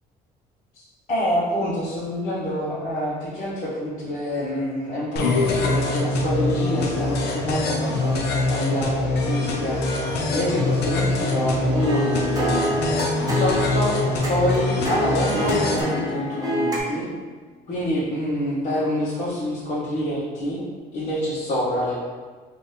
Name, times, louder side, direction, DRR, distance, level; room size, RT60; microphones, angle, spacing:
voice 1, 1.1-10.0 10.3-12.5 13.3-14.0 14.3-17.1 17.7-20.6 20.9-21.9, equal, 50° left, -10 dB, 1.0 m, -26 dB
sound 1, 5.2-15.8, left 2 dB, 75° left, 0.6 m, -24 dB
sound 2, 11.2-16.8, equal, 20° right, 0.9 m, -26 dB
4.0 x 2.6 x 3.3 m, 1.5 s
cardioid pair, 110°, 17 cm